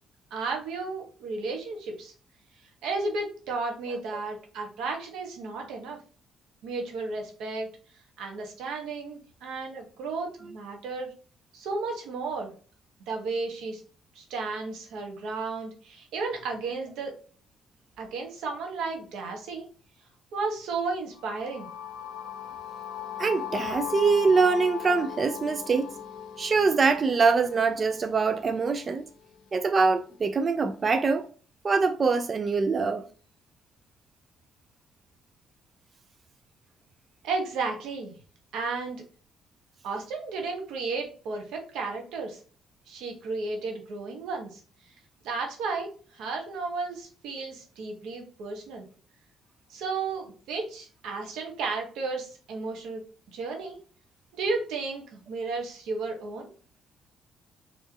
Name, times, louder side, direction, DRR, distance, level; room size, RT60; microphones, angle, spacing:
voice 1, 0.3-2.1 2.8-6.0 6.6-7.7 8.2-11.1 11.5-12.5 13.1-13.8 14.1-17.1 18.0-19.7 20.3-21.7 37.2-38.1 38.5-39.0 39.8-42.4 42.9-44.6 45.2-48.9 49.7-53.0 53.3-53.8 54.3-56.5, right 3 dB, 90° right, 1.3 m, -33 dB
sound 1, 21.1-29.1, left 10 dB, 90° left, 0.7 m, -38 dB
voice 2, 23.2-25.9 26.4-29.1 29.5-31.3 31.6-33.1, right 4 dB, 30° right, 0.3 m, -24 dB
4.3 x 3.0 x 2.9 m
cardioid pair, 135°, 0 cm